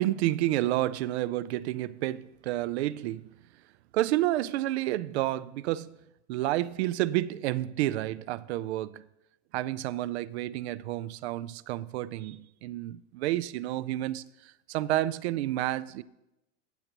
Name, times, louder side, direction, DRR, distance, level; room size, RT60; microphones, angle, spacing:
voice 1, 0.0-3.2 3.9-6.0 6.3-9.0 9.5-14.2 14.7-16.0, right 15 dB, 65° right, 0.5 m, -30 dB
16.5 x 6.6 x 2.9 m
hypercardioid pair, 125°, 35 cm